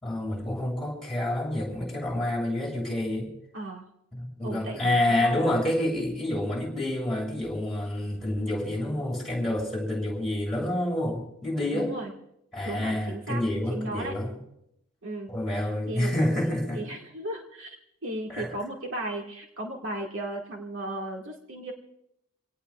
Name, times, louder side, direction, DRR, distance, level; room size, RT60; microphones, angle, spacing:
voice 1, 0.0-3.3 4.1-11.9 12.5-14.4 15.3-16.8 18.3-18.5, left 1 dB, ahead, -2 dB, 6.7 m, -28 dB
voice 2, 3.5-3.9 4.4-5.5 11.7-12.1 12.7-13.4 13.7-14.1 15.0-15.3 15.9-16.2 16.7-17.8 18.0-21.7, right 1 dB, 70° right, 0 dB, 2.0 m, -35 dB
27.0 x 18.0 x 2.4 m, 0.80 s
head